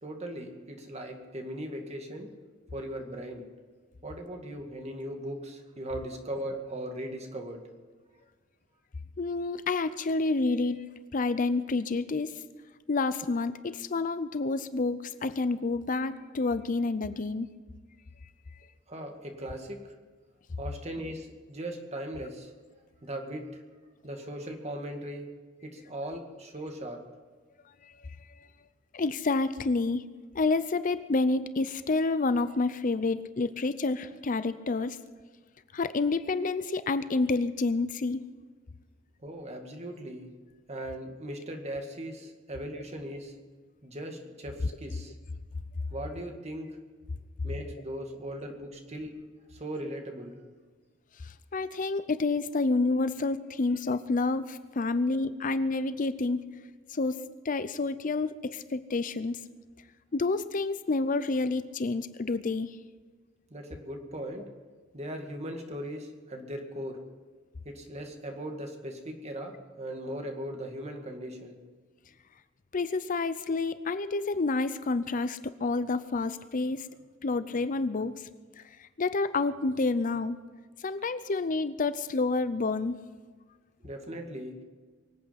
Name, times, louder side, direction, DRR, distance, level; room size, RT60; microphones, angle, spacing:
voice 1, 0.0-2.3 2.7-3.5 4.0-7.6 18.9-20.0 20.6-22.5 23.0-23.6 24.0-25.3 25.6-27.0 39.2-40.3 40.7-43.3 43.8-45.1 45.9-46.8 47.4-49.2 49.5-50.4 63.5-64.5 64.9-67.0 67.7-71.6 83.8-84.6, right 1 dB, 35° right, 3 dB, 2.1 m, -39 dB
voice 2, 9.2-12.3 12.9-17.5 27.8-28.1 28.9-35.0 35.7-38.2 51.2-56.5 56.9-59.4 60.1-62.8 72.7-76.9 77.2-78.3 78.6-80.4 80.8-83.0, left 3 dB, 45° left, 13 dB, 0.5 m, -29 dB
24.0 x 8.6 x 5.8 m, 1.5 s
head